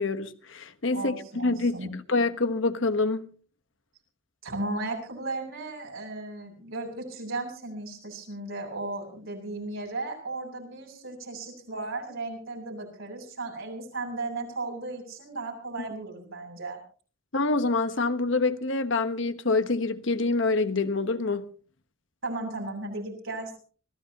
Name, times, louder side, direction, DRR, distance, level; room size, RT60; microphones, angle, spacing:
voice 1, 0.0-1.8 2.1-3.3 17.3-21.5, left 3 dB, 70° left, 1.2 m, -26 dB
voice 2, 0.9-1.9 4.4-16.8 22.2-23.6, right 2 dB, 90° right, 7.4 m, -35 dB
25.5 x 15.5 x 3.0 m
head